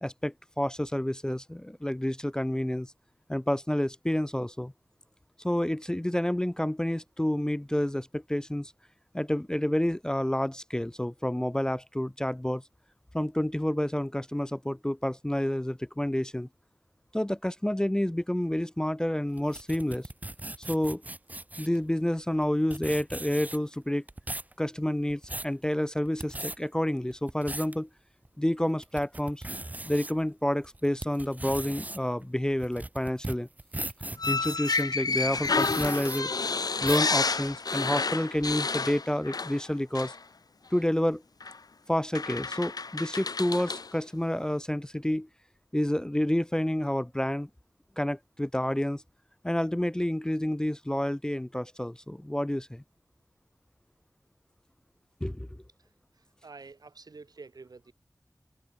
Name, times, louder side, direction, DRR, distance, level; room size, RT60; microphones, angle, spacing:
voice 1, 0.0-2.9 3.3-4.7 5.4-8.7 9.1-12.6 13.1-16.5 17.1-20.1 20.6-21.0 21.6-24.0 24.6-27.9 28.4-29.4 29.9-33.5 34.3-36.3 36.8-40.1 40.7-41.2 41.9-45.3 45.7-47.5 48.0-49.0 49.4-52.8 55.2-55.5, left 1 dB, 10° left, 0.4 m, -29 dB
sound 1, 19.4-21.8 22.4-22.5 22.7-23.7 24.1-24.5 25.0-25.5 26.1-26.6 27.1-27.7 28.2-28.3 28.8-30.1 30.6-34.8 35.4-36.2 36.8-37.1, right 2 dB, 25° right, 0.7 m, -38 dB
sound 2, 34.2-39.7 39.9-40.2 41.4-41.6 42.1-43.9, left 4 dB, 80° left, 1.0 m, -30 dB
voice 2, 56.4-57.9, right 4 dB, 90° right, 3.6 m, -48 dB
wide cardioid pair, 60°, 6 cm